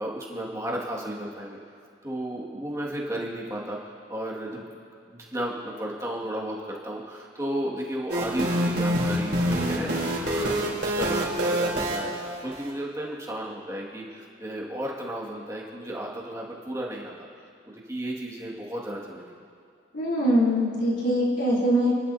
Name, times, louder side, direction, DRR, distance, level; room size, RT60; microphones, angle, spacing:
voice 1, 0.0-1.6 2.0-4.6 5.1-19.3, right 1 dB, 15° right, -4 dB, 2.0 m, -34 dB
sound 1, 8.1-12.7, equal, 70° right, 3.6 m, -26 dB
voice 2, 19.9-21.9, equal, 85° left, -6 dB, 3.6 m, -23 dB
28.5 x 12.0 x 2.8 m, 2.3 s
head